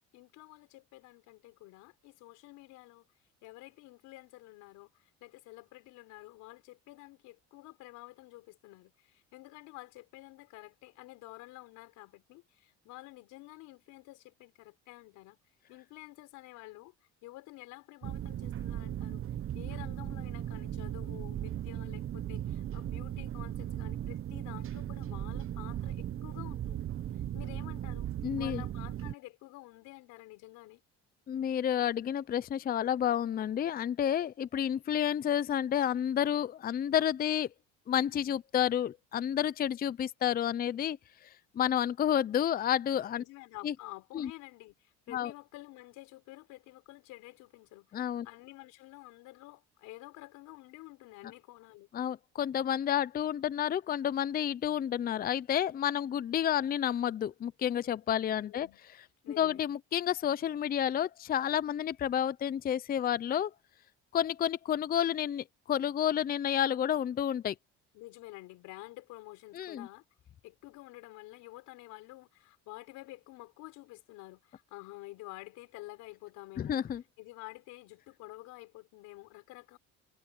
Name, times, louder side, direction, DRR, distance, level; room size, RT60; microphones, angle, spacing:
voice 1, 0.1-3.1 3.4-15.4 15.7-16.9 17.2-19.2 19.5-26.9 27.1-28.1 28.4-30.8 43.1-51.9 58.3-58.8 59.2-59.6 67.9-70.0 70.4-76.9 77.2-79.8, left 19 dB, 85° left, 4.6 m, -50 dB
sound 1, 18.0-29.1, right 11 dB, 45° right, 1.0 m, -37 dB
voice 2, 28.2-28.6 31.3-37.5 37.9-41.0 41.2-43.2 43.6-43.7 44.1-44.3 45.1-45.3 47.9-48.3 51.9-58.7 59.4-63.5 64.1-67.6 69.5-69.9 76.6-77.0, left 10 dB, 30° left, 0.5 m, -30 dB
cardioid pair, 110°, 30 cm